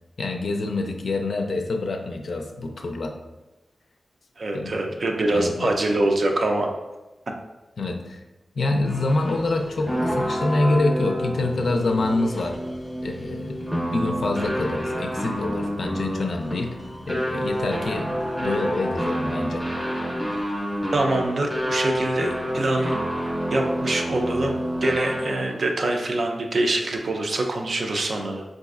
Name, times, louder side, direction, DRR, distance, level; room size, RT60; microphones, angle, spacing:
voice 1, 0.2-3.1 4.5-4.7 5.3-5.7 7.8-8.2 8.6-12.6 13.0-13.6 13.9-16.8 17.1-19.6, left 2 dB, 70° left, 4 dB, 0.4 m, -26 dB
voice 2, 4.4-6.7 20.9-23.0 23.5-28.4, right 2 dB, 60° right, 2 dB, 0.4 m, -24 dB
sound 1, 8.8-25.6, equal, ahead, 0.6 m, -28 dB
3.9 x 2.5 x 2.4 m, 1.1 s
wide cardioid pair, 90°, 0 cm